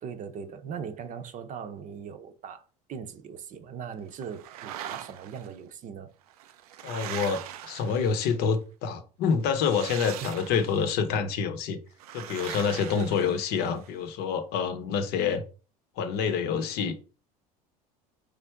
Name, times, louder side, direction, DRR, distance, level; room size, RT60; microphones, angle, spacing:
voice 1, 0.0-2.6 2.9-6.1 10.2-10.3, right 7 dB, 45° right, 0.6 m, -39 dB
sound 1, 4.2-5.5 6.3-8.4 9.5-10.9 12.0-13.9, right 11 dB, 80° right, 0.4 m, -41 dB
voice 2, 6.8-11.8 12.1-15.4 16.0-17.0, left 6 dB, 60° left, 0.8 m, -27 dB
3.3 x 2.6 x 4.5 m
hypercardioid pair, 80°, 19 cm